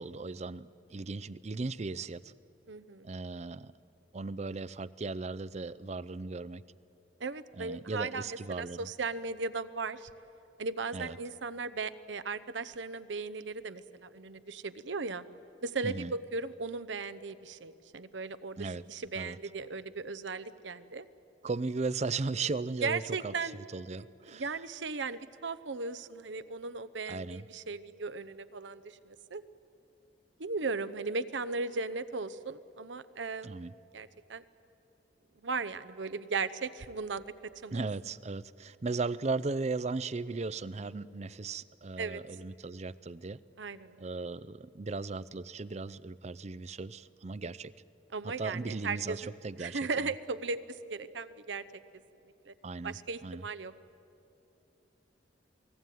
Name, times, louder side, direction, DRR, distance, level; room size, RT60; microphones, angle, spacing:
voice 1, 0.0-2.3 3.0-3.7 4.1-6.6 7.6-8.9 10.9-11.2 15.8-16.1 18.6-18.8 19.1-19.4 21.4-24.5 27.1-27.5 33.4-33.7 37.7-43.4 44.0-47.7 48.2-50.1 52.6-53.4, right 3 dB, 35° right, 19 dB, 0.5 m, -37 dB
voice 2, 2.7-3.1 7.2-10.1 10.6-15.2 15.6-21.1 22.8-23.6 24.3-29.4 30.4-33.5 33.9-34.4 35.4-37.2 37.6-37.8 42.0-42.2 43.6-44.1 48.1-49.2 49.6-51.6 52.5-52.6 52.8-53.7, right 4 dB, 80° right, 13 dB, 0.8 m, -37 dB
28.5 x 19.0 x 9.3 m, 2.8 s
head